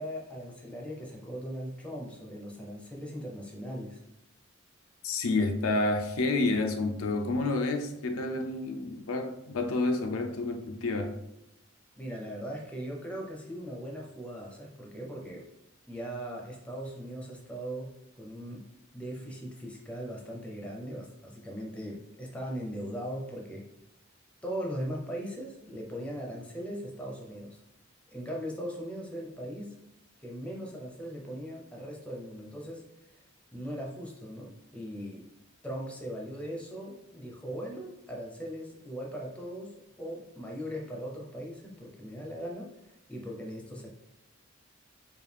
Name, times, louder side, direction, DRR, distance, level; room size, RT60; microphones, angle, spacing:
voice 1, 0.0-4.0 11.9-15.4 15.9-18.6 18.9-23.6 24.4-27.6 28.1-29.8 30.2-32.8 33.1-33.2 33.5-35.3 35.6-43.9, equal, 5° left, 0.7 m, -39 dB
voice 2, 5.0-11.2, left 2 dB, 85° left, 0.5 m, -29 dB
5.0 x 2.4 x 3.4 m
head